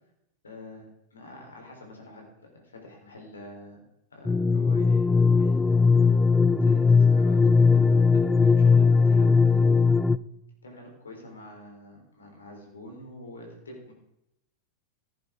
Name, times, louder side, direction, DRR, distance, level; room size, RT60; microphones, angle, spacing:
voice 1, 0.4-3.8 4.1-6.2 6.6-10.0 10.6-13.9, left 1 dB, 70° left, 1 dB, 3.6 m, -46 dB
sound 1, 4.2-10.2, left 4 dB, 10° left, 0.3 m, -19 dB
14.5 x 10.5 x 3.6 m, 0.83 s
figure-of-eight pair, 90°, 0 cm